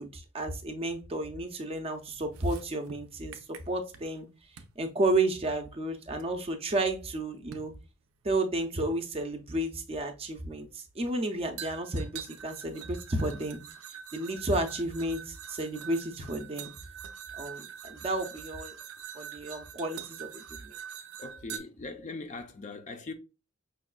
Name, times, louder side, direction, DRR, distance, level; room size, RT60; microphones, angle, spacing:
voice 1, 0.0-3.4 3.7-4.3 4.8-7.7 8.2-13.6 14.1-16.7 17.4-18.8 19.1-20.8, right 2 dB, 30° right, 0.5 m, -32 dB
sound 1, 2.2-4.2 4.6-4.8 6.2-6.3 7.5-7.8 9.0-9.1 11.6-21.6, right 8 dB, 85° right, 0.5 m, -45 dB
voice 2, 21.2-23.1, left 3 dB, 35° left, 0.4 m, -40 dB
5.2 x 2.2 x 2.3 m
head